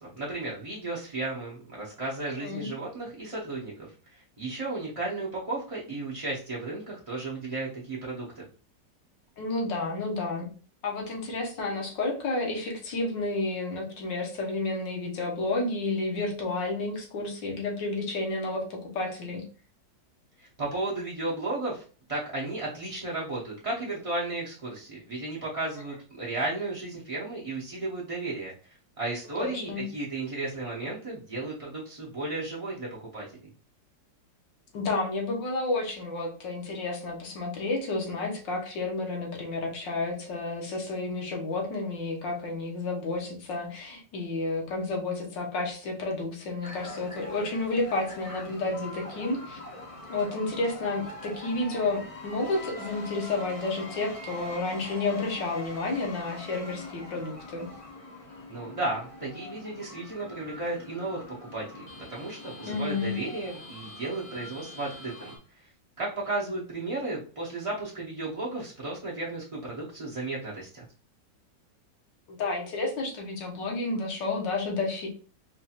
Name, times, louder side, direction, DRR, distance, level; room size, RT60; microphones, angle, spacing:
voice 1, 0.0-3.7 4.1-8.4 20.4-21.8 22.1-28.5 29.0-32.9 33.1-33.3 58.5-65.3 66.0-70.8, right 2 dB, 45° right, -6 dB, 0.4 m, -34 dB
voice 2, 9.4-10.5 10.8-19.4 29.4-29.8 34.7-49.6 50.1-57.7 62.6-63.2 72.3-75.1, left 3 dB, 80° left, 0 dB, 1.7 m, -31 dB
sound 1, 46.6-65.4, left 1 dB, 45° left, 0.4 m, -43 dB
4.8 x 2.4 x 2.8 m, 0.38 s
omnidirectional pair, 1.9 m